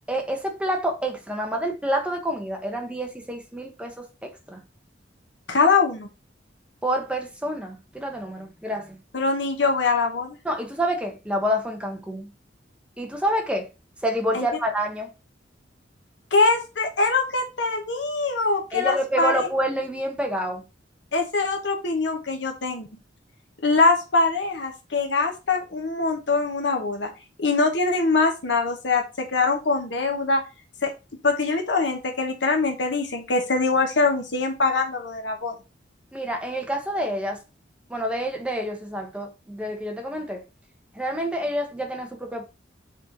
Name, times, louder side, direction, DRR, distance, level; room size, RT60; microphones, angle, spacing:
voice 1, 0.1-4.6 6.8-8.9 10.4-12.3 13.0-13.7 14.0-15.1 18.7-20.6 36.1-37.4 37.9-40.4 40.9-42.4, equal, 5° right, 1.0 m, -28 dB
voice 2, 5.5-6.1 9.1-10.4 14.3-14.5 16.3-19.5 21.1-22.9 23.6-27.1 27.4-30.4 30.8-30.9 31.2-35.5, left 3 dB, 70° left, 1.3 m, -23 dB
6.1 x 4.4 x 4.0 m
head